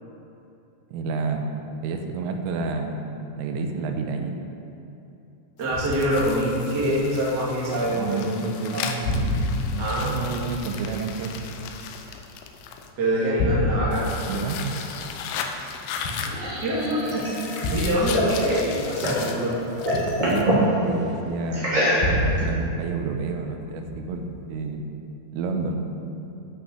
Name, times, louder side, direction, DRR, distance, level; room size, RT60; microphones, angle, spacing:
voice 1, 0.9-4.3 7.9-11.4 14.3-14.8 17.7-17.9 20.2-24.2 24.5-24.8 25.3-25.8, right 4 dB, 85° right, 4 dB, 3.4 m, -30 dB
sound 1, 5.6-12.9 13.9-20.4, left 7 dB, 85° left, 3.1 m, -37 dB
voice 2, 5.6-8.3 8.7-8.8 9.8-10.1 13.0-14.1 16.2-17.2 17.7-19.6, equal, 55° right, -6 dB, 1.1 m, -25 dB
sound 2, 5.7-8.0 8.2-8.7 9.0-12.7 13.1-16.8 17.6-21.2 22.0-23.5 23.9-24.4, left 1 dB, 70° left, 2.2 m, -30 dB
sound 3, 15.9-19.3 19.6-20.7 21.5-22.4, equal, 25° right, 1.0 m, -25 dB
11.0 x 6.3 x 6.6 m, 2.9 s
omnidirectional pair, 5.7 m